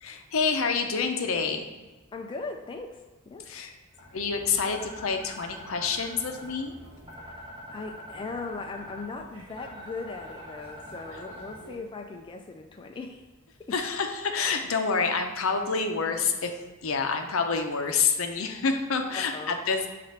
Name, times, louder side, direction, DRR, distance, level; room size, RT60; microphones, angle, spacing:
voice 1, 0.0-1.7 3.5-3.7 4.1-6.7 13.7-16.5 16.8-19.9, left 5 dB, 70° left, 5 dB, 0.6 m, -27 dB
voice 2, 2.1-3.5 7.2-13.2 13.7-13.8 19.1-19.6, left 3 dB, 25° left, 3 dB, 0.3 m, -39 dB
sound 1, 3.9-11.7, equal, 25° right, 1.3 m, -44 dB
7.3 x 2.5 x 5.7 m, 1.2 s
head